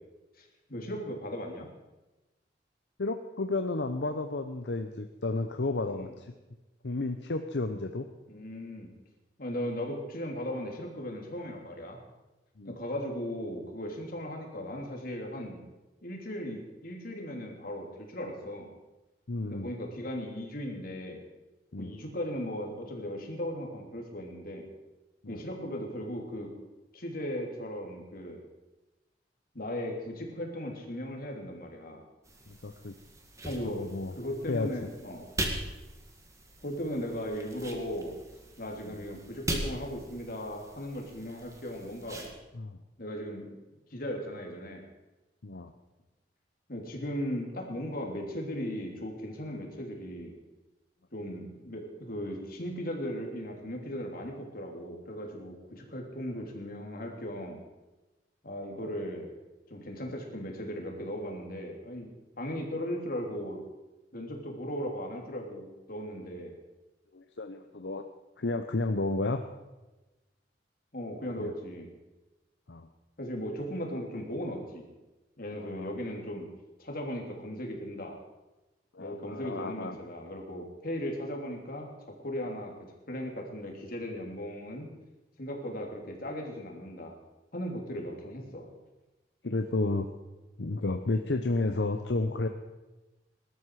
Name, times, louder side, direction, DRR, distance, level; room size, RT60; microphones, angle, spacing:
voice 1, 0.4-1.7 6.0-6.1 8.3-8.9 9.4-12.0 12.6-15.6 16.0-18.7 19.5-21.2 21.8-24.7 25.3-26.5 26.9-28.4 29.5-32.0 33.4-33.9 34.2-35.3 36.6-38.2 38.6-42.3 43.0-43.6 43.9-44.8 46.7-50.3 51.1-57.6 58.4-59.3 59.7-62.1 62.4-63.6 64.1-66.6 70.9-71.9 73.2-74.8 75.4-76.5 76.8-78.2 79.0-81.9 82.2-82.7 83.1-84.9 85.4-87.1 87.5-88.7, equal, 55° left, 1 dB, 3.2 m, -37 dB
voice 2, 3.0-6.3 6.8-8.1 12.6-12.8 19.3-19.7 21.7-22.0 25.2-25.4 32.5-33.0 33.7-34.2 34.5-34.7 38.8-39.0 42.5-42.8 45.4-45.7 67.1-68.0 68.4-69.4 71.4-71.5 72.7-72.9 75.5-76.0 78.9-80.0 82.6-82.7 89.4-90.1 90.6-92.5, left 2 dB, 75° left, 6 dB, 0.8 m, -32 dB
sound 1, 32.2-42.3, right 1 dB, 20° right, 2.0 m, -40 dB
20.0 x 12.5 x 4.9 m, 1.1 s
head